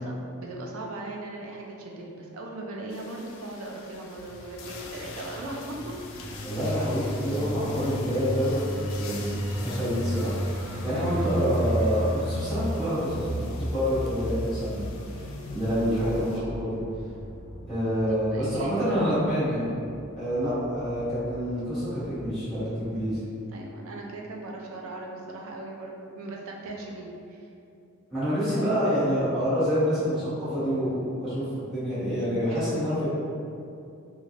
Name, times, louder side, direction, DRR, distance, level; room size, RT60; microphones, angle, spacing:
voice 1, 0.0-5.9 15.2-15.6 18.1-19.3 22.9-23.2 23.5-27.5 28.5-29.1 32.4-32.6, right 2 dB, 70° right, -1 dB, 0.4 m, -38 dB
sound 1, 2.9-16.4, left 4 dB, 65° left, 0.3 m, -46 dB
sound 2, 4.2-23.0, equal, 30° left, 0.7 m, -46 dB
sound 3, 6.2-18.5 18.8-19.0, equal, 85° left, 0.7 m, -33 dB
voice 2, 6.4-8.7 9.0-14.8 15.5-16.8 17.7-19.7 20.2-23.2 28.1-33.1, equal, ahead, -14 dB, 1.2 m, -27 dB
3.2 x 2.4 x 2.5 m, 2.6 s
head